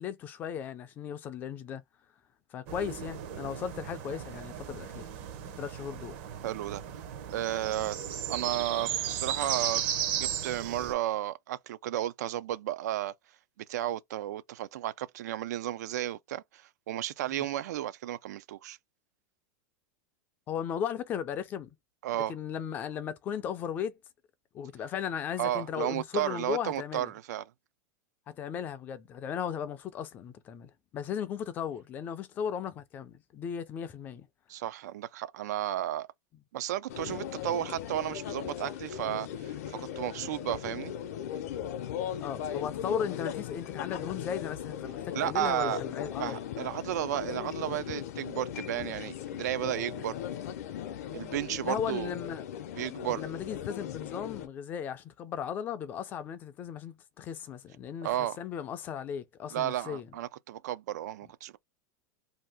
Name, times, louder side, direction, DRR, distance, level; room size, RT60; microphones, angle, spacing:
voice 1, 0.0-1.8 2.5-5.1 5.6-6.2 17.3-17.5 20.5-21.7 22.3-24.0 24.5-27.1 28.3-34.3 42.2-46.4 51.2-51.3 51.6-52.4 53.1-60.1, left 8 dB, 20° left, 0.3 m, -36 dB
sound 1, 2.7-10.9, right 10 dB, 45° right, 0.7 m, -35 dB
voice 2, 6.4-6.8 7.3-8.0 8.3-9.9 10.2-13.1 13.7-18.8 22.0-22.3 25.4-27.4 34.5-36.1 36.5-40.9 45.1-45.8 46.2-50.2 51.1-52.1 52.8-53.2 58.0-58.4 59.5-61.6, right 13 dB, 80° right, 0.4 m, -33 dB
sound 2, 36.9-54.5, left 9 dB, 65° left, 0.6 m, -38 dB
2.7 x 2.3 x 3.4 m
supercardioid pair, 170°, 9 cm